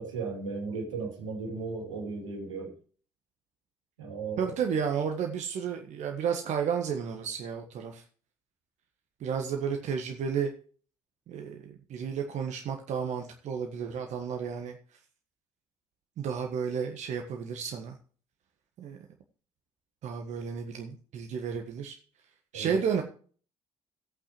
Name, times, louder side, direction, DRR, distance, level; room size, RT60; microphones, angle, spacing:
voice 1, 0.0-2.7 4.0-4.5 22.5-22.8, right 4 dB, 80° right, 2.9 m, -36 dB
voice 2, 4.4-8.0 9.2-10.5 11.3-14.8 16.2-18.0 18.8-19.0 20.0-22.0 22.5-23.0, right 7 dB, 50° right, 1.5 m, -32 dB
16.0 x 8.7 x 3.1 m
figure-of-eight pair, 50°, 15 cm